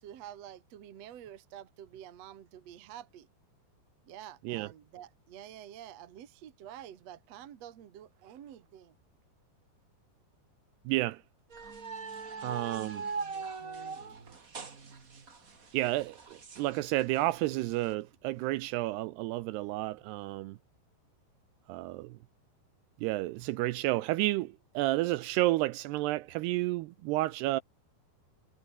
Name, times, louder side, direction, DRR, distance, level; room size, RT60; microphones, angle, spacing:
voice 1, 0.0-3.3 4.0-8.9, right 11 dB, 55° right, 2.0 m, -48 dB
voice 2, 10.9-11.2 12.4-13.0 15.7-20.6 21.7-22.2 23.0-27.6, right 18 dB, 85° right, 2.6 m, -31 dB
sound 1, 11.5-17.9, right 5 dB, 35° right, 1.5 m, -41 dB
omnidirectional pair, 5.0 m